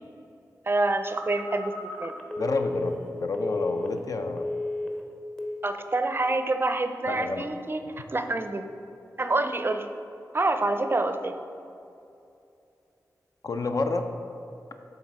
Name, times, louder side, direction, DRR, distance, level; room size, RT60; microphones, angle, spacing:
voice 1, 0.7-1.7 2.0-2.1 5.6-8.7 9.2-9.9 10.3-11.4, right 2 dB, 35° right, 8 dB, 0.4 m, -27 dB
Telephone, 1.1-4.1 4.4-5.0 5.4-5.7, left 2 dB, 10° left, 0.7 m, -33 dB
voice 2, 2.4-4.5 7.1-7.5 13.4-14.1, left 3 dB, 60° left, 6 dB, 0.5 m, -29 dB
7.2 x 3.3 x 4.7 m, 2.7 s
cardioid pair, 50°, 7 cm